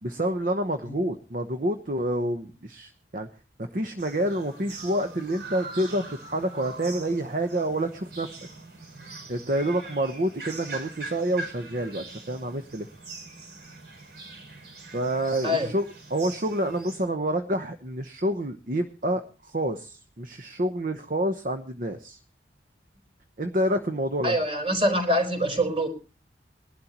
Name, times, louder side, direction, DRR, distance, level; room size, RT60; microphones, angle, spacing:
voice 1, 0.0-3.3 3.7-8.4 9.3-12.9 14.9-15.8 16.1-22.2 23.4-24.4, right 1 dB, 50° right, 7 dB, 0.9 m, -28 dB
sound 1, 4.0-17.1, right 3 dB, 70° right, 5.5 m, -42 dB
voice 2, 24.2-25.9, equal, 30° right, 6 dB, 4.3 m, -24 dB
21.5 x 12.0 x 2.9 m, 0.33 s
head